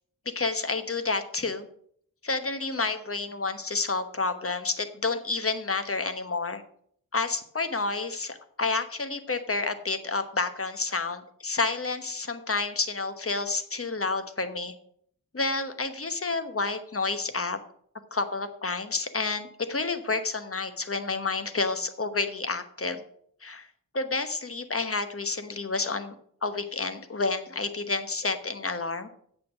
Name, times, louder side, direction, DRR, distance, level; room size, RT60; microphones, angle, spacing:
voice 1, 0.2-1.7 2.2-6.6 7.1-14.7 15.3-17.6 18.1-23.0 23.4-23.7 23.9-26.1 26.4-29.1, left 3 dB, 40° left, 9 dB, 1.1 m, -30 dB
8.4 x 6.9 x 6.3 m, 0.63 s
wide cardioid pair, 95°, 35 cm